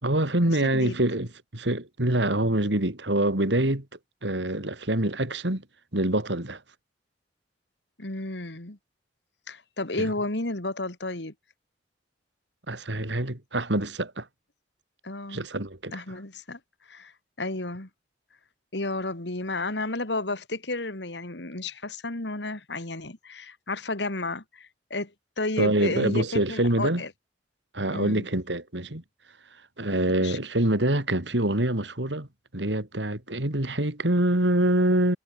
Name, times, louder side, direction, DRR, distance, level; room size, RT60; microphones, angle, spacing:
voice 1, 0.0-3.9 4.2-5.6 5.9-6.6 10.0-10.1 12.7-14.3 15.3-16.0 25.6-27.0 27.7-29.0 29.8-32.3 32.5-35.2, right 1 dB, 75° right, 3.5 m, -25 dB
voice 2, 8.0-8.8 9.5-11.3 15.0-15.4 15.9-16.6 16.9-17.1 17.4-17.9 18.7-25.1 25.4-27.1 27.9-28.3 30.2-30.4, left 2 dB, 70° left, 2.6 m, -32 dB
head